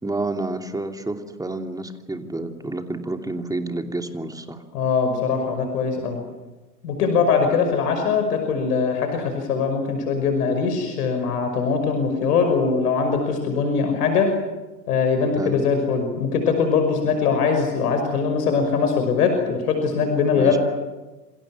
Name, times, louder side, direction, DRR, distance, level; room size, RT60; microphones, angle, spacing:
voice 1, 0.0-4.6 15.3-15.6 20.3-20.6, right 2 dB, 5° right, 5 dB, 2.8 m, -29 dB
voice 2, 4.7-6.2 6.8-14.3 14.9-20.6, left 5 dB, 65° left, 5 dB, 5.9 m, -21 dB
28.0 x 27.0 x 6.2 m, 1.2 s
hypercardioid pair, 95°, 50 cm